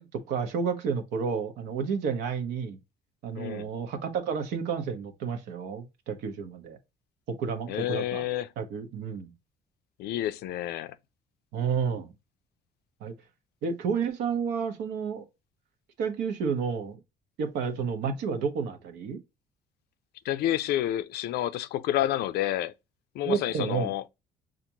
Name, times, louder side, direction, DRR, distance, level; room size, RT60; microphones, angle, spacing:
voice 1, 0.0-2.8 3.2-6.8 7.3-8.2 8.6-9.3 11.5-12.1 13.0-13.1 13.6-15.3 16.0-17.0 17.4-19.2 23.2-23.9, right 6 dB, 85° right, 0.9 m, -31 dB
voice 2, 3.3-3.7 7.7-8.5 10.0-11.0 20.2-22.7 23.1-24.0, left 13 dB, 70° left, 0.4 m, -29 dB
5.8 x 2.5 x 2.8 m
cardioid pair, 110°, 17 cm